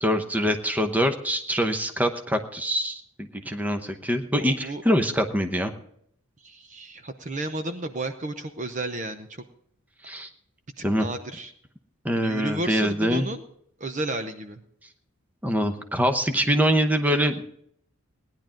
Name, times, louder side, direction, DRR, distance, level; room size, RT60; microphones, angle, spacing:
voice 1, 0.0-5.7 10.0-10.3 10.8-11.1 12.0-13.2 15.4-17.4, equal, 10° right, 6 dB, 0.9 m, -24 dB
voice 2, 4.4-4.8 6.4-9.4 10.8-11.5 12.2-13.4 13.8-14.6, right 2 dB, 35° right, 8 dB, 0.8 m, -32 dB
18.0 x 10.5 x 3.8 m, 0.67 s
head